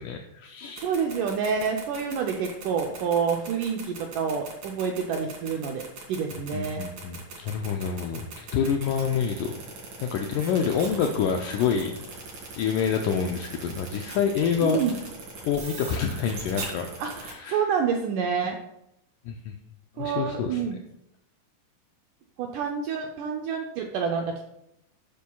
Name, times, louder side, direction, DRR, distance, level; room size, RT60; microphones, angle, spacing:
voice 1, 0.0-0.9 6.5-9.5 10.0-11.9 12.6-14.8 15.5-17.6 19.3-19.5 20.0-20.6, left 7 dB, 80° left, 3 dB, 1.9 m, -27 dB
sound 1, 0.7-17.3, right 4 dB, 55° right, 3.6 m, -39 dB
voice 2, 0.8-6.8 14.6-15.0 17.0-18.6 20.0-20.8 22.4-24.4, right 6 dB, 80° right, 2 dB, 1.9 m, -28 dB
13.0 x 8.4 x 2.3 m, 0.83 s
omnidirectional pair, 4.4 m